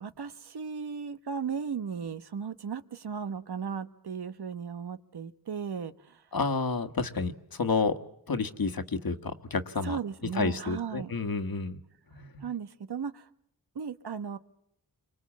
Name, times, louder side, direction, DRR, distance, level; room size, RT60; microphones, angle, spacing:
voice 1, 0.0-6.2 9.8-11.1 12.4-13.3 13.7-14.4, right 6 dB, 80° right, 11 dB, 1.2 m, -36 dB
voice 2, 6.3-8.0 8.3-10.0 10.3-11.8 12.1-12.5, left 4 dB, 65° left, 9 dB, 1.6 m, -30 dB
28.5 x 24.5 x 7.4 m, 0.77 s
cardioid pair, 60°, 38 cm